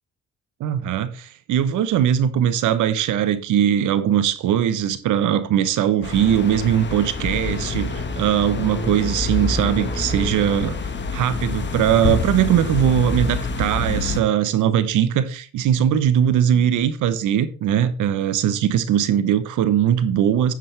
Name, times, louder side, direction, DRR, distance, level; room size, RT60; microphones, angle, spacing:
voice 1, 0.6-10.8 11.1-20.5, right 10 dB, 85° right, 1.0 m, -20 dB
sound 1, 6.0-14.2, left 3 dB, 35° left, 1.5 m, -26 dB
9.7 x 7.6 x 3.4 m
cardioid pair, 90°, 30 cm